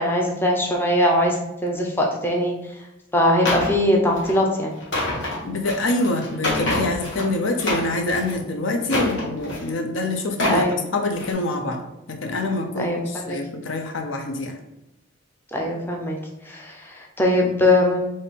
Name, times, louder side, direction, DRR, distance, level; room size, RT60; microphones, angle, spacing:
voice 1, 0.0-1.4 1.6-2.5 3.1-4.7 10.5-10.8 12.7-13.4 15.5-16.2 16.5-18.1, left 1 dB, 10° left, 0 dB, 0.5 m, -21 dB
sound 1, 3.4-3.8 4.1-4.4 4.8-7.3 7.5-8.3 8.8-9.7 10.2-10.7 11.1-11.3, left 1 dB, 65° left, 1.2 m, -26 dB
voice 2, 5.4-11.8 12.1-14.6, left 2 dB, 85° left, 4 dB, 0.6 m, -25 dB
3.6 x 2.6 x 4.0 m, 0.90 s
head